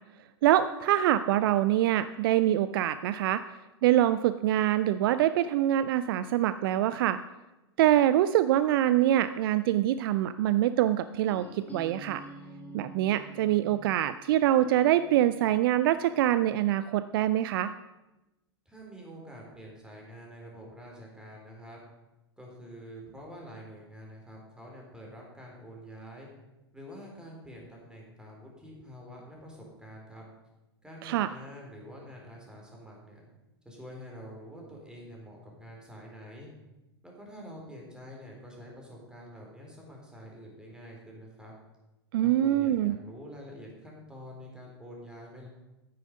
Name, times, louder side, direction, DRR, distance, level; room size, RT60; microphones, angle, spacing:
voice 1, 0.4-3.4 3.8-7.2 7.8-12.2 12.7-17.7 31.0-31.3 42.1-43.0, right 12 dB, 55° right, 13 dB, 0.4 m, -25 dB
sound 1, 11.2-17.0, right 1 dB, 10° left, 1.8 m, -49 dB
voice 2, 18.7-21.8 22.4-26.3 26.7-30.2 30.8-33.3 33.6-36.5 37.0-41.5 42.2-45.5, equal, 5° right, -1 dB, 3.7 m, -47 dB
9.5 x 9.2 x 5.3 m, 1.0 s
hypercardioid pair, 100°, 14 cm